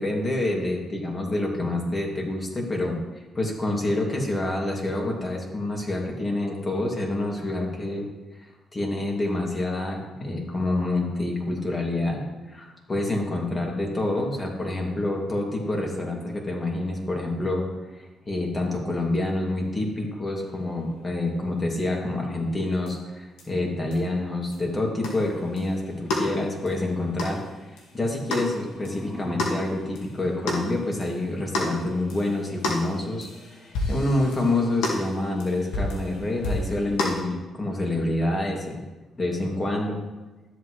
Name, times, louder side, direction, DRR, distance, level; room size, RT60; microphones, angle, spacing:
voice 1, 0.0-8.1 8.4-12.2 12.5-17.6 17.9-27.4 27.7-33.3 33.9-38.8 39.2-40.0, left 2 dB, 25° left, -1 dB, 2.5 m, -27 dB
sound 1, 22.9-23.0 23.4-23.5 23.9-24.0 24.5-24.6 25.0-37.2, left 2 dB, 90° left, 1.9 m, -32 dB
sound 2, 28.1-31.1, equal, 10° left, 0.9 m, -41 dB
13.0 x 8.2 x 3.2 m, 1.1 s
cardioid pair, 90°, 0 cm